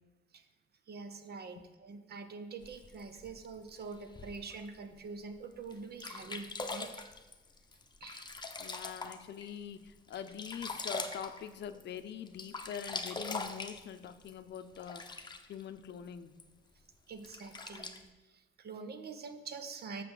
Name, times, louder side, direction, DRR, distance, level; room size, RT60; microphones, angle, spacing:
voice 1, 0.9-6.9 8.0-8.3 17.1-18.0 18.2-20.0, right 4 dB, 55° right, 8 dB, 1.0 m, -45 dB
Sink (filling or washing), 2.6-4.6 5.2-5.3 5.7-5.8 6.0-9.5 9.9-12.0 12.3-15.6 16.4-16.5 17.2-18.0, left 3 dB, 20° left, 0.8 m, -42 dB
voice 2, 8.6-16.3, left 8 dB, 60° left, 10 dB, 0.7 m, -44 dB
6.8 x 5.9 x 7.0 m, 1.2 s
cardioid pair, 90°, 20 cm